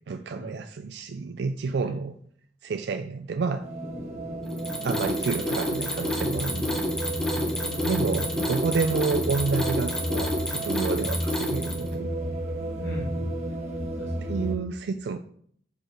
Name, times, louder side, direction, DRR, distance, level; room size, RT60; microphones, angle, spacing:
voice 1, 0.1-2.1 2.6-3.6 4.8-6.9 7.8-12.1 14.3-15.2, right 4 dB, 65° right, 7 dB, 0.4 m, -29 dB
sound 1, 3.6-14.6, right 1 dB, 40° right, 1.9 m, -32 dB
sound 2, 3.8-10.4, left 1 dB, 50° left, 1.0 m, -40 dB
Mechanisms, 4.5-11.9, left 1 dB, 5° left, 1.0 m, -29 dB
voice 2, 7.3-7.8 10.9-11.1 12.8-13.3 14.0-14.5, equal, 65° left, -6 dB, 1.8 m, -40 dB
4.8 x 4.6 x 5.9 m, 0.62 s
head